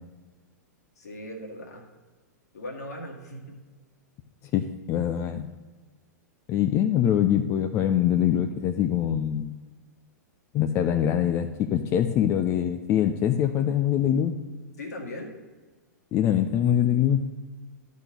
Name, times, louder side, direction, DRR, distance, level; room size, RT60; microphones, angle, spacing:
voice 1, 1.0-1.9 2.5-3.6 14.8-15.3, left 1 dB, 65° left, 1 dB, 2.0 m, -38 dB
voice 2, 4.5-5.5 6.5-9.5 10.5-14.4 16.1-17.3, left 10 dB, 30° left, 7 dB, 0.5 m, -24 dB
12.0 x 4.2 x 6.7 m, 1.3 s
figure-of-eight pair, 100°, 9 cm